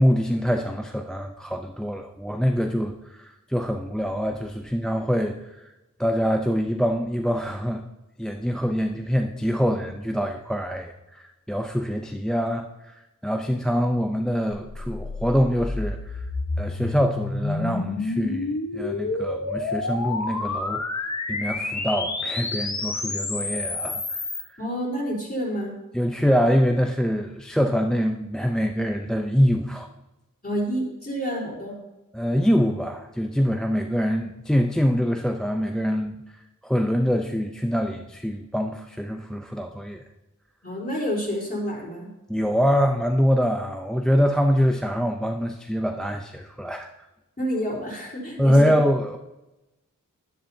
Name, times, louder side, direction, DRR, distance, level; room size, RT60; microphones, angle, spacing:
voice 1, 0.0-5.7 6.0-7.9 8.2-16.3 16.6-21.0 21.3-24.6 25.9-29.9 32.1-36.2 36.6-40.0 42.3-46.9 48.4-49.2, equal, ahead, 5 dB, 0.6 m, -24 dB
sound 1, 14.5-24.4, left 3 dB, 55° left, 1.1 m, -29 dB
voice 2, 24.6-25.7 30.4-31.8 40.6-42.1 47.4-48.7, equal, 25° left, -4 dB, 3.8 m, -29 dB
11.5 x 10.5 x 2.8 m, 1.0 s
wide cardioid pair, 40°, 34 cm